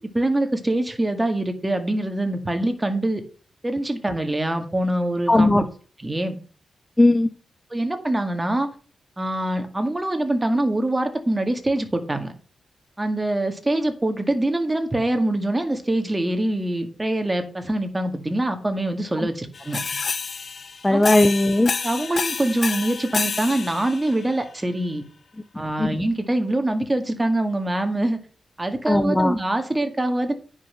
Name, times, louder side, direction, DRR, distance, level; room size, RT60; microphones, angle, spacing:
voice 1, 0.0-3.2 3.6-5.6 6.0-6.4 7.7-8.7 9.2-12.3 13.0-19.8 20.9-21.1 21.8-25.0 25.6-28.2 28.6-30.3, right 1 dB, 15° right, 6 dB, 2.0 m, -24 dB
voice 2, 5.3-5.6 7.0-7.3 19.2-19.3 20.8-21.7 25.8-25.9 28.9-29.3, left 2 dB, 10° left, 9 dB, 0.8 m, -17 dB
sound 1, 19.5-24.4, left 5 dB, 50° left, 0.8 m, -29 dB
9.6 x 5.7 x 5.6 m, 0.37 s
wide cardioid pair, 105°, 0 cm